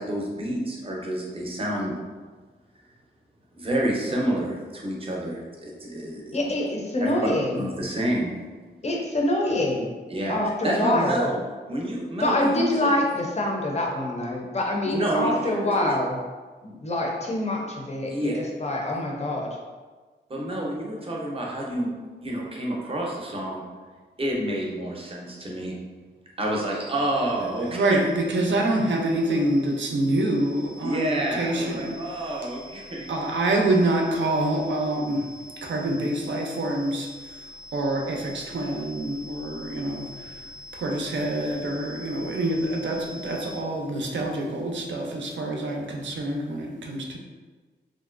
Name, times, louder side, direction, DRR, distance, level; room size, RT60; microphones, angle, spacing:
voice 1, 0.0-1.9 3.5-6.4 7.0-7.3 7.5-8.3 10.1-10.4 10.6-11.3 11.7-12.9 14.8-15.4 15.8-15.9 16.6-16.8 18.1-18.4 20.3-21.9 22.2-23.6 24.2-25.8 26.4-27.9 30.8-33.0, right 1 dB, 30° right, -2 dB, 0.5 m, -28 dB
voice 2, 6.3-7.6 8.8-9.9 10.3-11.3 12.2-16.2 16.6-18.3 18.6-19.6, left 1 dB, 35° left, 0 dB, 0.4 m, -25 dB
sound 1, 26.9-43.6, left 1 dB, 80° left, 0.6 m, -45 dB
voice 3, 27.7-32.0 33.1-35.2 35.6-37.1 37.7-40.3 40.7-47.2, right 1 dB, 80° right, 1 dB, 0.5 m, -26 dB
3.0 x 2.5 x 2.4 m, 1.4 s
wide cardioid pair, 175°, 19 cm